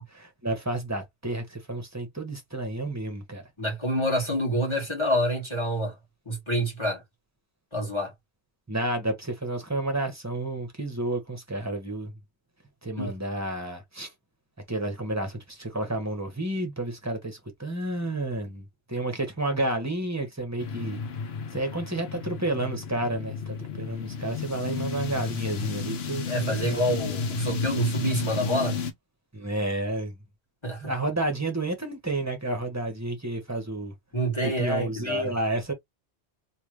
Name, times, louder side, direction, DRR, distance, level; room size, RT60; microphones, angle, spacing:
voice 1, 0.1-3.4 8.7-12.1 12.8-14.1 14.7-21.0 21.5-26.8 29.3-30.1 30.8-33.9 34.4-35.7, right 2 dB, 15° right, 1.0 m, -31 dB
voice 2, 3.6-5.9 6.3-7.0 7.7-8.1 13.0-13.1 26.3-28.8 30.6-30.9 34.1-35.3, equal, 25° left, 1.9 m, -27 dB
sound 1, 20.6-28.9, left 5 dB, 65° left, 1.0 m, -32 dB
3.4 x 2.7 x 3.1 m
omnidirectional pair, 1.2 m